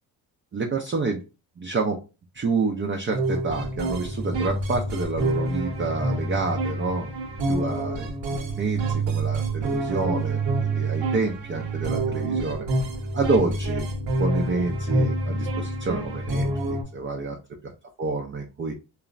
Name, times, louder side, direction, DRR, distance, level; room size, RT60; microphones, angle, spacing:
voice 1, 0.5-1.2 1.6-2.0 2.3-7.1 7.5-12.7 13.1-13.9 14.2-16.5 16.9-17.4 17.6-17.7 18.0-18.7, right 3 dB, 25° right, 2 dB, 0.5 m, -28 dB
sound 1, 3.1-16.8, right 2 dB, 65° right, 0.8 m, -27 dB
3.0 x 2.0 x 2.4 m, 0.30 s
supercardioid pair, 50°, 48 cm